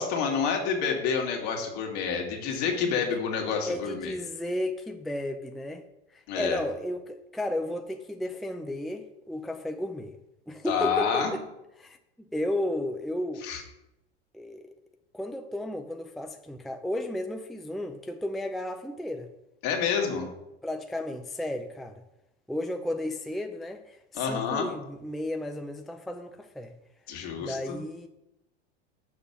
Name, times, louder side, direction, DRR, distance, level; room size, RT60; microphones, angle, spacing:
voice 1, 0.0-4.1 6.3-6.6 10.6-11.3 13.4-13.6 19.6-20.3 24.1-24.7 27.1-27.8, left 6 dB, 55° left, 2.2 m, -28 dB
voice 2, 3.7-5.8 6.1-10.2 10.5-11.4 11.8-13.5 14.3-14.7 15.1-19.3 20.6-22.0 22.5-26.7 27.4-28.1, left 1 dB, ahead, 0.5 m, -33 dB
6.4 x 5.4 x 7.0 m
hypercardioid pair, 100°, 33 cm